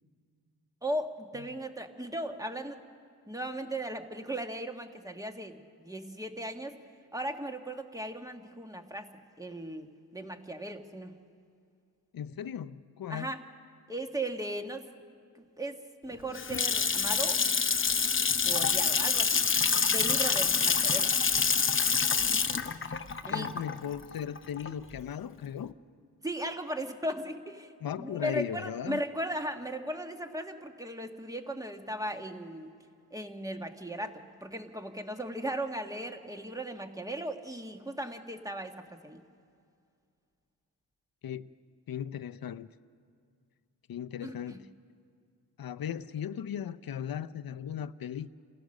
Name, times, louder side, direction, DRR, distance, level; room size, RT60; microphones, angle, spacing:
voice 1, 0.8-2.8 3.3-6.7 7.1-9.1 9.4-9.9 10.1-11.1 13.1-13.4 13.9-15.0 15.3-17.4 18.4-19.4 19.9-21.1 23.2-23.5 26.2-27.7 28.0-32.7 33.1-38.8 39.0-39.2 44.2-44.6, right 1 dB, 10° right, 5 dB, 1.4 m, -37 dB
voice 2, 12.1-13.3 23.3-25.7 27.8-29.0 41.2-41.5 41.9-42.7 43.9-44.7 45.6-48.3, left 9 dB, 60° left, 11 dB, 0.7 m, -37 dB
Water tap faucet / Sink (filling or washing) / Splash splatter, 16.1-25.0, left 5 dB, 30° left, 0.8 m, -27 dB
28.5 x 16.0 x 6.5 m, 2.3 s
cardioid pair, 85°, 39 cm